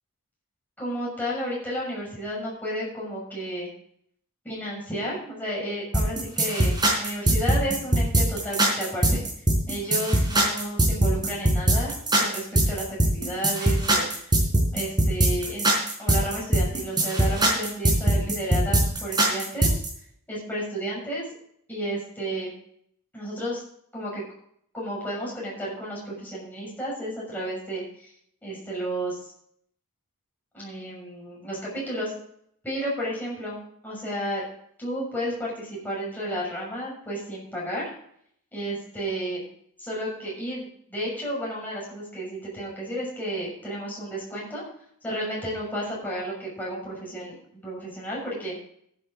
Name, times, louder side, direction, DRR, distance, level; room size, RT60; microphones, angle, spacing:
voice 1, 0.8-3.7 4.4-9.2 9.7-11.9 12.2-14.3 14.7-15.7 16.0-19.7 20.3-21.2 21.7-22.5 23.1-23.6 23.9-24.2 24.7-28.1 28.4-29.3 30.5-32.1 32.6-33.6 33.8-34.4 34.8-37.8 38.5-39.4 39.8-44.6 45.0-48.6, right 1 dB, 10° left, -5 dB, 6.4 m, -32 dB
sound 1, 5.9-19.9, right 1 dB, 20° right, 4.3 m, -21 dB
14.5 x 9.2 x 3.9 m, 0.66 s
head